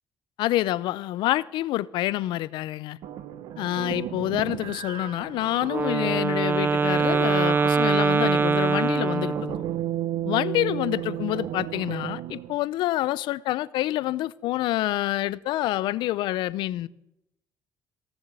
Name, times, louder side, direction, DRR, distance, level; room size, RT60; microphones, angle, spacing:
voice 1, 0.4-3.0 3.6-9.6 10.2-16.9, left 15 dB, 85° left, 0.6 m, -27 dB
sound 1, 3.0-12.5, right 12 dB, 85° right, 0.8 m, -34 dB
Wind instrument woodwind instrument, 5.7-9.8, right 4 dB, 25° right, 0.5 m, -23 dB
16.5 x 7.3 x 8.1 m
cardioid pair, 100°, 8 cm